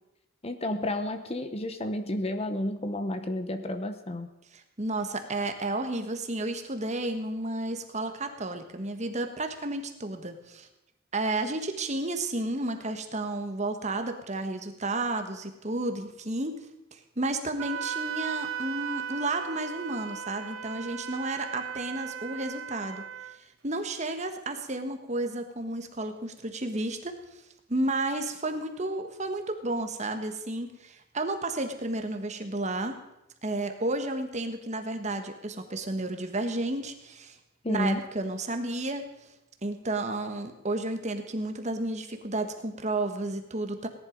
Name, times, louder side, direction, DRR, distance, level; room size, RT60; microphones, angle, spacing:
voice 1, 0.4-4.3 37.6-38.0, left 1 dB, 30° left, 8 dB, 0.9 m, -31 dB
voice 2, 4.5-10.7 11.1-16.6 16.9-23.0 23.6-27.2 27.7-33.0 33.4-37.4 37.7-39.0 39.6-43.9, right 2 dB, 35° right, 7 dB, 1.4 m, -32 dB
Wind instrument woodwind instrument, 17.6-23.4, right 7 dB, 75° right, 0.6 m, -37 dB
18.0 x 10.5 x 5.2 m, 0.90 s
head